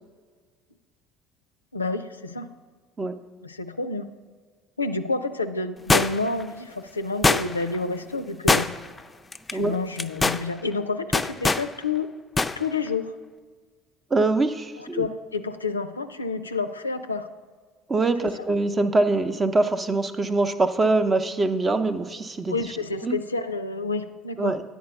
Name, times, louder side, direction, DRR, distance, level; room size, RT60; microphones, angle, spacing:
voice 1, 1.7-2.6 3.4-4.1 4.8-8.7 9.5-12.1 12.6-13.1 14.8-17.3 18.2-18.5 22.5-24.6, left 3 dB, 85° left, 9 dB, 0.4 m, -29 dB
sound 1, 5.9-6.4 7.2-7.7 8.5-9.0 9.3-9.5 10.0-10.4 11.1-11.7 12.4-12.6 12.9-13.0, left 3 dB, 20° left, 0.4 m, -21 dB
voice 2, 14.1-15.1 17.9-22.6 23.0-23.2 24.4-24.6, right 2 dB, 25° right, 10 dB, 0.6 m, -23 dB
9.5 x 4.5 x 6.9 m, 1.5 s
figure-of-eight pair, 60°, 0 cm